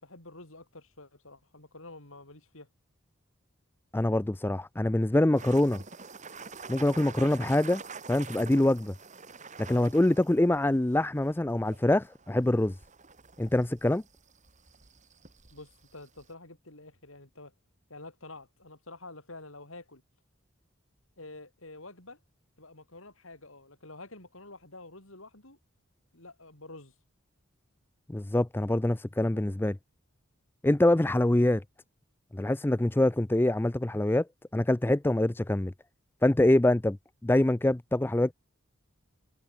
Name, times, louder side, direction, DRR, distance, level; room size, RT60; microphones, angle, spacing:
voice 1, 0.0-2.7 15.5-17.5 17.9-20.0 21.2-22.2 22.6-25.6 26.1-26.9, left 2 dB, 75° left, 7.4 m, -48 dB
voice 2, 3.9-5.8 6.7-7.8 8.1-8.9 9.6-12.7 13.4-14.0 28.1-29.8 30.6-31.6 32.3-34.3 34.5-35.7 36.2-37.0 37.2-38.3, left 1 dB, 10° left, 0.4 m, -25 dB
sound 1, 5.3-16.3, right 5 dB, 35° right, 2.7 m, -47 dB
head